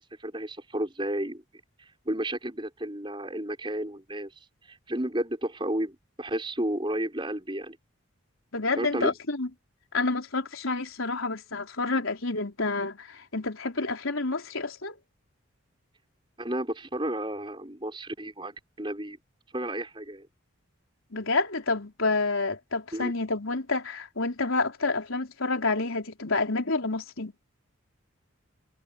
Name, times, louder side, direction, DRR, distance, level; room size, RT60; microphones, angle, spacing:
voice 1, 0.0-1.4 2.0-4.3 4.7-7.8 8.8-9.1 16.4-19.2 19.5-20.3 22.9-23.1, right 1 dB, 25° right, 6.1 m, -32 dB
voice 2, 8.5-9.5 9.9-15.0 21.1-27.3, left 3 dB, 80° left, 4.0 m, -29 dB
head